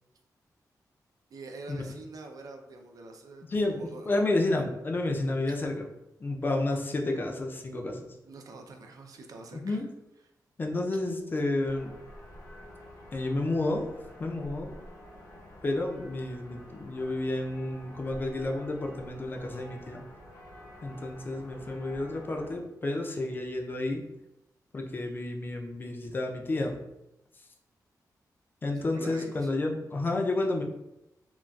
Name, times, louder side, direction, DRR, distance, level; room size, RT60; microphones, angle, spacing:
voice 1, 1.3-4.1 8.2-9.8 28.9-29.5, right 2 dB, 60° right, 3 dB, 0.4 m, -45 dB
voice 2, 3.5-5.9 6.2-8.2 9.5-9.9 10.6-11.9 13.1-13.9 14.2-14.7 15.6-20.0 20.8-24.0 24.7-26.8 28.6-30.6, left 2 dB, 30° left, 2 dB, 0.4 m, -30 dB
sound 1, 11.6-22.6, left 1 dB, 75° left, 0.8 m, -49 dB
3.7 x 2.3 x 2.2 m, 0.88 s
wide cardioid pair, 170°, 7 cm